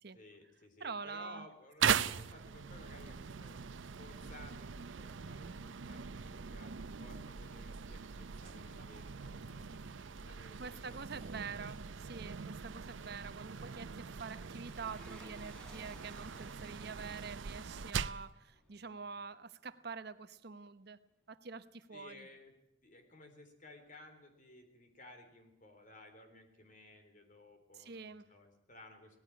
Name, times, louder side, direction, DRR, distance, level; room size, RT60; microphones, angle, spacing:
voice 1, 0.1-11.7 21.9-22.5 22.8-29.2, left 1 dB, 45° left, 6 dB, 3.7 m, -57 dB
voice 2, 0.8-1.5 1.8-2.0 10.6-21.0 21.3-22.3 27.7-28.2, right 5 dB, 60° right, 12 dB, 0.9 m, -46 dB
sound 1, 1.8-18.3, right 7 dB, 90° right, 0.6 m, -41 dB
sound 2, 13.1-19.5 19.8-19.9, right 1 dB, 5° left, 3.5 m, -60 dB
18.5 x 15.5 x 9.8 m, 0.84 s
head